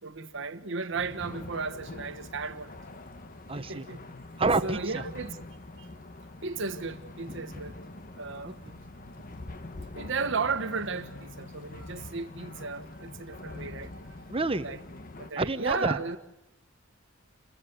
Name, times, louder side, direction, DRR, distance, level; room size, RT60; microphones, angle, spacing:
voice 1, 0.0-2.7 3.5-4.0 4.6-5.4 5.7-5.9 6.4-7.8 8.2-8.6 9.9-14.3 14.6-14.8 15.2-16.2, right 4 dB, 65° right, 1.3 m, -35 dB
sound 1, 0.9-15.3, left 2 dB, 45° left, 1.2 m, -44 dB
voice 2, 3.5-3.9 4.4-5.0 8.4-8.7 14.3-14.7 15.4-16.0, right 3 dB, 25° right, 1.0 m, -28 dB
28.5 x 15.5 x 8.1 m
head